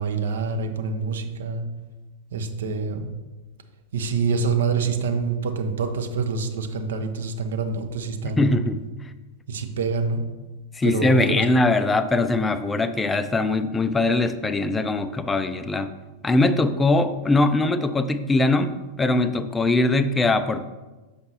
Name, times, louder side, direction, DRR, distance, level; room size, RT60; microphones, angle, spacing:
voice 1, 0.0-1.7 2.3-3.1 3.9-8.6 9.5-10.3 10.8-11.5, right 4 dB, 60° right, 7 dB, 0.6 m, -26 dB
voice 2, 8.2-8.8 10.7-15.9 16.2-20.7, left 2 dB, 15° left, 11 dB, 0.4 m, -21 dB
6.4 x 5.1 x 2.9 m, 1.2 s
figure-of-eight pair, 90°, 0 cm